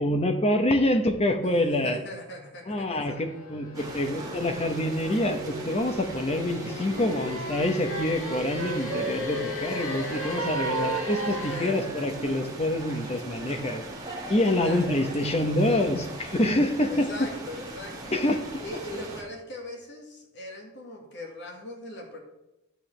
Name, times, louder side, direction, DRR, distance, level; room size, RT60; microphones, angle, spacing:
voice 1, 0.0-2.0 2.7-13.8 14.3-17.1 18.1-18.6, left 1 dB, 30° left, 7 dB, 0.9 m, -26 dB
voice 2, 1.4-3.2 11.4-11.9 14.5-15.0 16.9-18.2 18.6-22.2, left 1 dB, 55° left, 0 dB, 1.8 m, -40 dB
sound 1, 2.7-11.6, left 3 dB, 75° left, 1.4 m, -37 dB
sound 2, 3.7-19.2, right 2 dB, 15° right, 1.5 m, -40 dB
Wind instrument woodwind instrument, 6.8-9.4 9.7-12.5, right 6 dB, 70° right, 0.7 m, -35 dB
11.5 x 6.9 x 3.3 m, 0.94 s
head